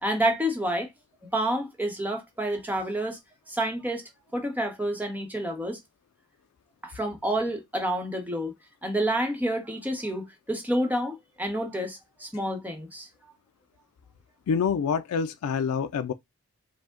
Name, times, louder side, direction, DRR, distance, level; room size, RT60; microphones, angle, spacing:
voice 1, 0.0-0.9 1.3-3.2 3.5-4.0 4.3-5.8 6.8-8.5 8.8-13.1, right 1 dB, 10° right, 0.8 m, -29 dB
voice 2, 14.5-16.1, left 6 dB, 85° left, 0.3 m, -26 dB
4.9 x 2.1 x 3.6 m
head